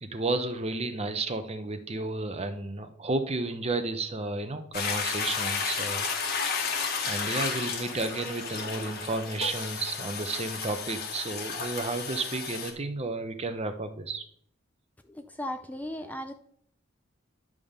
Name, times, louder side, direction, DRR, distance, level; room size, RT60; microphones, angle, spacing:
voice 1, 0.0-6.5 7.0-14.2, right 2 dB, 30° right, 8 dB, 0.8 m, -32 dB
Toilet flush, 4.7-12.7, left 5 dB, 50° left, 1.5 m, -32 dB
voice 2, 15.1-16.3, left 1 dB, 10° left, 6 dB, 0.5 m, -36 dB
10.5 x 3.6 x 6.6 m, 0.64 s
head